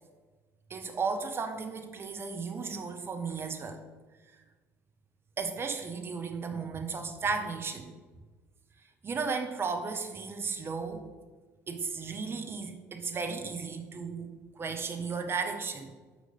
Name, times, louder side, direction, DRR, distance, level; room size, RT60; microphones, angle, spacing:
voice 1, 0.7-3.8 5.4-7.9 9.0-11.1 11.7-14.3 14.6-15.9, right 5 dB, 30° right, 5 dB, 1.0 m, -34 dB
9.2 x 3.3 x 5.4 m, 1.3 s
figure-of-eight pair, 55°, 8 cm